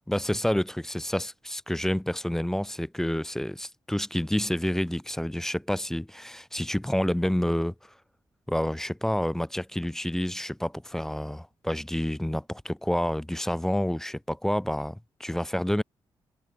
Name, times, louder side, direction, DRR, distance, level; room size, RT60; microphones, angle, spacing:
voice 1, 0.1-7.7 8.5-15.8, left 1 dB, 5° left, 0.4 m, -29 dB
cardioid pair, 70°, 9 cm